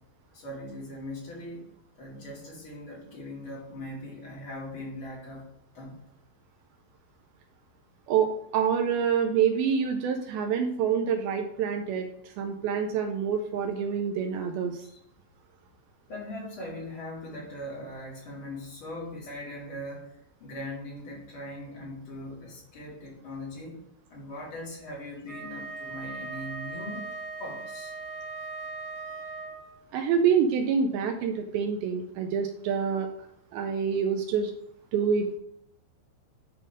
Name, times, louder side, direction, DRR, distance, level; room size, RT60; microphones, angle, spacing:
voice 1, 0.3-1.7 2.0-6.0 14.8-15.0 16.1-20.1 20.4-23.8 24.1-27.1 27.4-27.9, left 1 dB, 35° left, -4 dB, 2.8 m, -40 dB
voice 2, 8.1-14.8 29.9-33.1 33.5-34.5 34.9-35.4, right 7 dB, 85° right, 4 dB, 2.1 m, -27 dB
Wind instrument woodwind instrument, 25.2-29.8, right 3 dB, 60° right, 0.7 m, -39 dB
11.0 x 3.8 x 5.0 m, 0.75 s
omnidirectional pair, 5.1 m